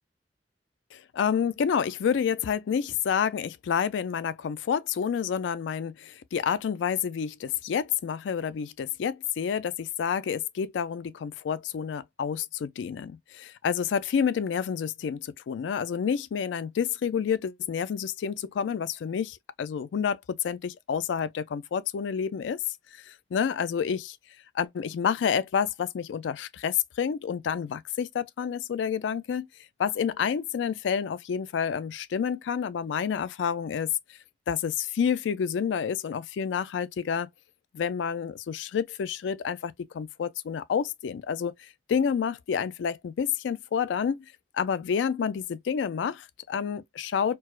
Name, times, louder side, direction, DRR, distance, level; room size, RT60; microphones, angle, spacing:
voice 1, 0.9-22.6 22.9-24.0 24.5-29.5 29.8-33.9 34.5-37.3 37.7-41.5 41.9-44.2 44.5-47.4, left 7 dB, 85° left, 0.3 m, -29 dB
4.5 x 2.0 x 2.2 m
head